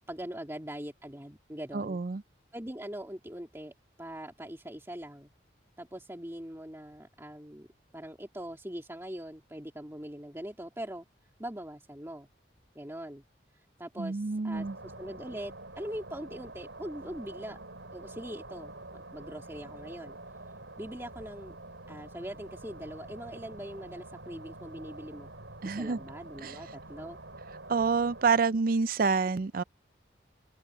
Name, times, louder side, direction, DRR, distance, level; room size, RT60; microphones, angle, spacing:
voice 1, 0.1-2.0 2.5-5.3 5.8-7.7 7.9-11.1 11.4-12.3 12.7-13.2 13.5-17.6 17.9-20.2 20.8-21.6 21.9-25.3 25.7-27.2, right 1 dB, 15° right, 2.5 m, -42 dB
voice 2, 1.7-2.2 14.0-14.8 25.6-26.0 26.4-26.6 27.7-29.6, right 4 dB, 50° right, 0.5 m, -28 dB
sound 1, 14.5-28.3, right 2 dB, 90° right, 6.6 m, -47 dB
open air
head